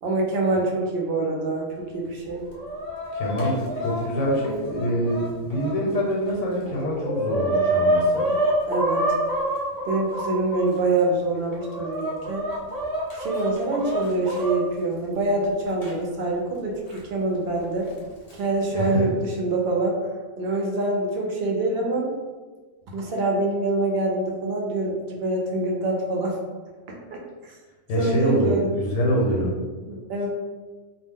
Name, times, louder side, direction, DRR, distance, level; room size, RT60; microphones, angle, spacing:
voice 1, 0.0-2.4 8.7-9.1 9.8-12.4 13.2-17.9 18.3-20.0 20.4-22.1 22.9-26.4 26.9-27.6 28.0-28.7 29.8-30.3, right 2 dB, 65° right, -1 dB, 0.6 m, -25 dB
Chicken rooster, 2.2-5.7 6.3-6.4 6.6-10.7 11.3-14.6 15.8-15.9 16.9-17.0 18.0-18.3, right 1 dB, 65° left, 0.4 m, -27 dB
voice 2, 3.1-8.3 18.7-19.0 27.9-29.5, equal, 80° left, -2 dB, 1.0 m, -25 dB
2.3 x 2.0 x 3.5 m, 1.3 s
omnidirectional pair, 1.4 m